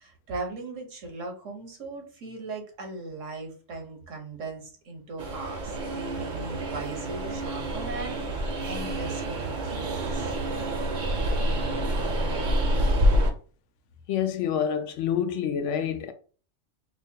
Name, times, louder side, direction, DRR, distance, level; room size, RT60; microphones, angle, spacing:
voice 1, 0.0-10.3, right 3 dB, 85° right, 1.4 m, -38 dB
Train, 5.2-13.3, right 1 dB, 50° right, 0.6 m, -27 dB
voice 2, 14.1-16.1, left 8 dB, 75° left, 0.9 m, -27 dB
4.7 x 2.2 x 2.8 m
omnidirectional pair, 1.3 m